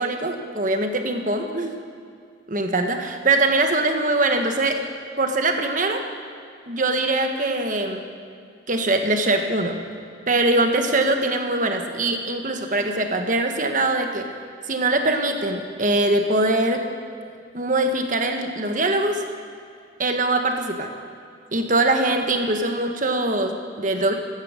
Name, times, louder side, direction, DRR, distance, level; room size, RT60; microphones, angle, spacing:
voice 1, 0.0-1.8 2.5-4.8 5.2-6.0 6.7-8.0 8.7-9.8 10.3-14.2 14.7-16.8 17.5-19.2 20.0-20.9 21.5-24.1, right 2 dB, 40° right, 4 dB, 1.4 m, -22 dB
15.5 x 12.0 x 6.7 m, 2.3 s
head